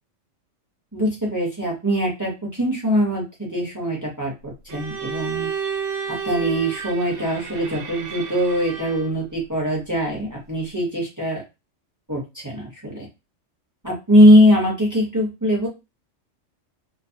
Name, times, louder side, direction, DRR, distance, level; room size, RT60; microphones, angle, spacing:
voice 1, 0.9-5.5 6.1-11.4 12.1-13.1 13.8-15.7, equal, 20° right, -3 dB, 0.7 m, -21 dB
Bowed string instrument, 4.7-9.2, right 6 dB, 70° right, 0.9 m, -31 dB
2.4 x 2.0 x 2.7 m, 0.25 s
omnidirectional pair, 1.3 m